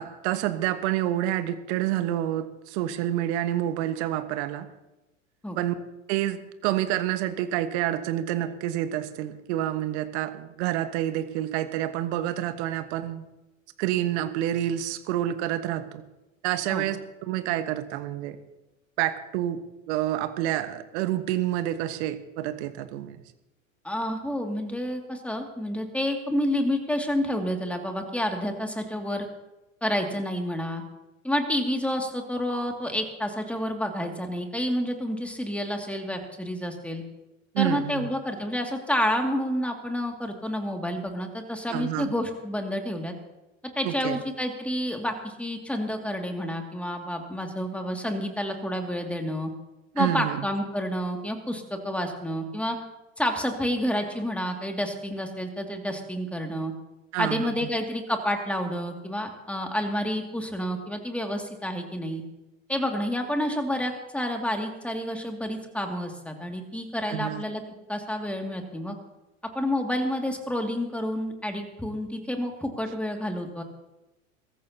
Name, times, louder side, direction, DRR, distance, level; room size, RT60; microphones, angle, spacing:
voice 1, 0.0-4.7 5.6-5.8 6.1-13.2 13.8-16.0 16.4-18.4 19.0-19.6 19.9-23.2 37.5-38.1 41.7-42.1 43.8-44.2 50.0-50.4 57.1-57.7 67.1-67.4, right 13 dB, 55° right, 10 dB, 1.4 m, -28 dB
voice 2, 23.8-29.3 29.8-30.8 31.2-37.0 37.6-43.1 43.8-49.5 49.9-52.8 53.2-56.7 57.2-62.2 62.7-67.6 67.9-69.0 69.5-73.6, equal, 5° left, 3 dB, 2.3 m, -29 dB
23.0 x 14.0 x 2.9 m, 1.0 s
hypercardioid pair, 85°, 40 cm